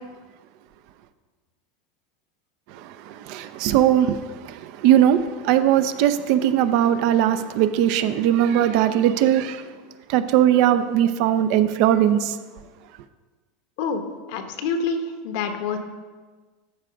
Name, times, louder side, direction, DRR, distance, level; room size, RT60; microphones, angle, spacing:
voice 1, 3.3-4.2 4.8-9.6 10.1-12.3, right 11 dB, 60° right, 0.5 m, -19 dB
voice 2, 14.3-15.8, left 5 dB, 65° left, 1.1 m, -27 dB
12.5 x 4.5 x 5.1 m
supercardioid pair, 140°, 0 cm